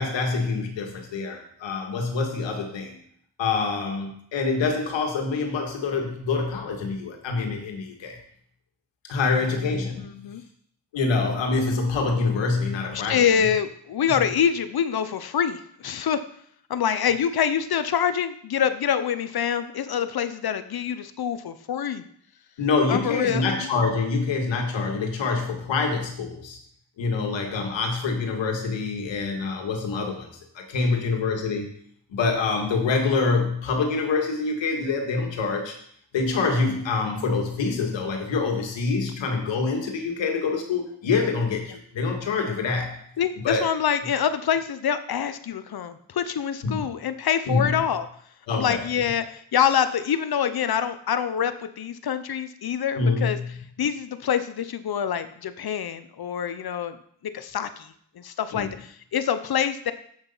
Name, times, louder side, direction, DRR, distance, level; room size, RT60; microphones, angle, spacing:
voice 1, 0.0-3.0 3.4-8.2 9.1-10.0 10.9-13.3 14.1-14.3 22.6-26.6 27.0-31.7 32.1-35.7 36.1-43.0 43.4-43.7 46.6-46.8 47.5-47.8 48.5-48.8 52.9-53.6 58.5-58.7, left 4 dB, 90° left, 2 dB, 1.9 m, -26 dB
voice 2, 10.0-10.4 13.1-16.2 16.7-22.0 22.9-23.7 43.2-48.1 48.5-53.4 53.8-57.0 57.3-59.9, left 8 dB, 55° left, 11 dB, 0.9 m, -26 dB
8.1 x 6.6 x 5.7 m, 0.64 s
cardioid pair, 65°, 44 cm